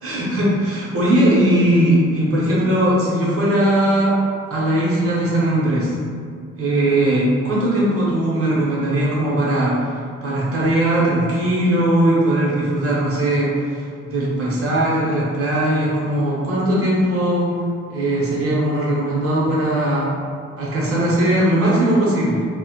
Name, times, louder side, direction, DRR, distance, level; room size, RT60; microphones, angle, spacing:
voice 1, 0.0-4.2 4.5-5.9 6.5-17.5 17.9-20.1 20.6-22.5, right 1 dB, 45° right, -6 dB, 0.9 m, -19 dB
2.2 x 2.0 x 2.8 m, 2.1 s
supercardioid pair, 60°, 31 cm